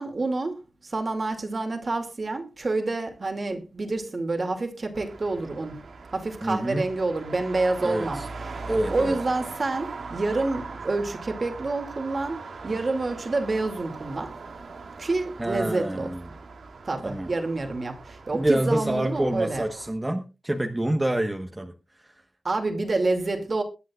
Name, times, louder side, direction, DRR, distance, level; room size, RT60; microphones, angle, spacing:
voice 1, 0.0-5.8 6.1-8.6 8.9-14.3 15.0-16.1 16.9-19.6 22.4-23.6, right 3 dB, 45° right, 2.4 m, -28 dB
Traffic noise roadway noise, 4.9-19.9, right 4 dB, 85° right, 2.3 m, -40 dB
voice 2, 6.4-6.9 7.8-8.3 8.7-9.2 15.4-16.3 17.0-17.3 18.3-22.1, right 1 dB, 15° right, 1.2 m, -27 dB
22.0 x 9.4 x 2.4 m
wide cardioid pair, 95°, 0 cm